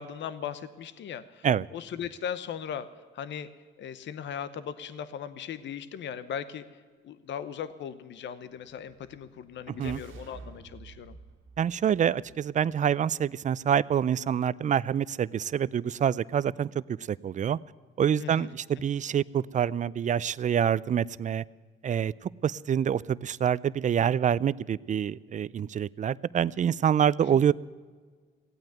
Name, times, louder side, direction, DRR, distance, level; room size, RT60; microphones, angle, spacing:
voice 1, 0.0-1.5 1.7-2.9 3.1-3.5 3.8-6.6 7.0-11.2 18.2-18.5 27.2-27.4, left 8 dB, 65° left, 13 dB, 0.9 m, -38 dB
sound 1, 8.7-12.9, right 4 dB, 75° right, 1.7 m, -50 dB
voice 2, 11.6-17.6 18.0-21.4 21.8-27.5, right 9 dB, 40° right, 21 dB, 0.4 m, -26 dB
16.5 x 9.0 x 9.2 m, 1.5 s
cardioid pair, 90°, 20 cm